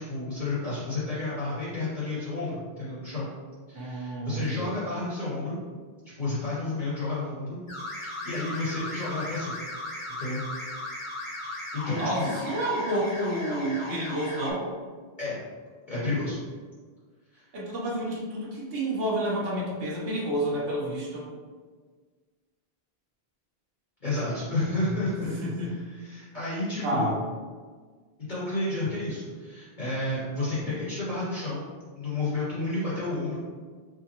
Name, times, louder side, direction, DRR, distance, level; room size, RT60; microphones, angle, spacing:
voice 1, 0.0-3.3 3.7-5.6 6.1-7.6 8.0-9.6 10.2-10.4 11.4-12.3 15.2-15.4 15.9-16.4 17.3-17.4 24.0-25.3 25.6-27.1 28.3-31.6 32.0-33.4, left 2 dB, 45° left, -10 dB, 1.3 m, -31 dB
voice 2, 3.7-4.8 11.9-14.7 17.5-21.3 25.2-25.7 26.8-27.2, right 1 dB, 65° right, -5 dB, 1.1 m, -30 dB
sound 1, 7.7-14.5, left 1 dB, 30° left, 1.0 m, -37 dB
4.9 x 2.3 x 2.9 m, 1.5 s
omnidirectional pair, 1.1 m